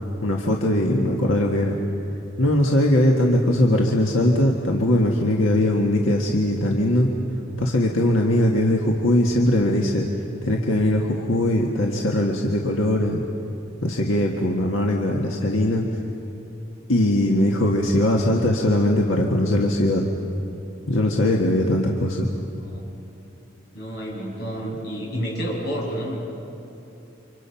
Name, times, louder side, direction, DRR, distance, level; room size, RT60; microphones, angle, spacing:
voice 1, 0.2-1.8 2.4-7.1 7.6-10.1 10.4-13.2 13.8-15.9 16.9-20.1 20.9-22.3, left 1 dB, 90° left, 0 dB, 1.7 m, -20 dB
voice 2, 22.6-23.0 23.7-26.2, equal, 55° left, -3 dB, 6.9 m, -30 dB
30.0 x 25.5 x 5.8 m, 2.9 s
head